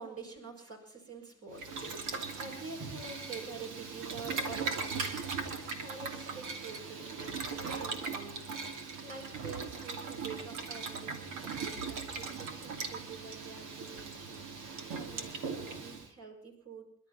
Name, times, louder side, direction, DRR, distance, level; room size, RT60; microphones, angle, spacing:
voice 1, 0.0-8.4 9.0-14.5 14.9-16.9, right 4 dB, 50° right, 1 dB, 6.1 m, -47 dB
Boiling, 1.5-16.1, right 4 dB, 85° right, 2.8 m, -39 dB
28.0 x 12.0 x 4.2 m, 0.70 s
cardioid pair, 90°, 30 cm